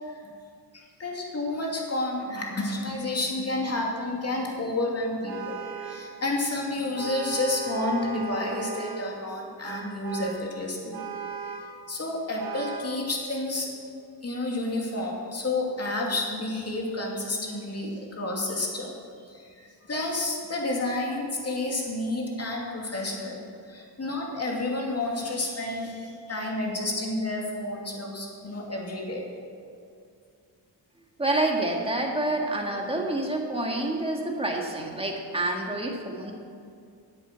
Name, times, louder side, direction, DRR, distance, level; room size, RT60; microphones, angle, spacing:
voice 1, 0.7-11.0 11.9-13.7 14.2-18.9 19.3-19.5 19.9-23.4 23.7-29.3, left 2 dB, 35° left, -1 dB, 2.6 m, -30 dB
Vehicle horn car horn honking, 5.3-6.2 6.9-9.1 9.6-10.5 10.9-11.8 12.4-13.0, right 7 dB, 55° right, 1.8 m, -37 dB
voice 2, 31.2-36.3, right 2 dB, 15° right, 0 dB, 1.8 m, -28 dB
10.0 x 8.4 x 6.9 m, 2.4 s
cardioid pair, 95°, 43 cm